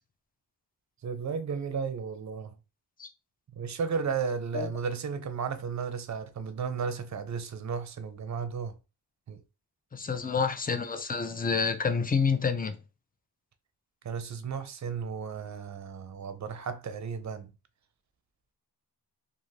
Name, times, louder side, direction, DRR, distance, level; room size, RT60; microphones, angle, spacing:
voice 1, 1.0-2.5 3.5-8.8 9.3-9.4 14.0-17.5, right 6 dB, 45° right, 0.6 m, -34 dB
voice 2, 9.9-12.8, left 5 dB, 20° left, 0.5 m, -28 dB
2.5 x 2.5 x 3.2 m
cardioid pair, 55°, 41 cm